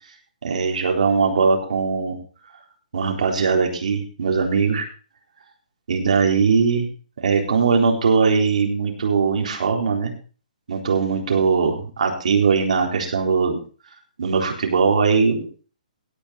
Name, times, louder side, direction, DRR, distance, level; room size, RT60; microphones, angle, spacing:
voice 1, 0.4-2.2 2.9-4.9 5.9-6.9 7.2-10.1 10.7-13.6 14.2-15.4, right 5 dB, 60° right, 2 dB, 3.9 m, -20 dB
17.0 x 8.8 x 3.9 m, 0.37 s
hypercardioid pair, 180°, 5 cm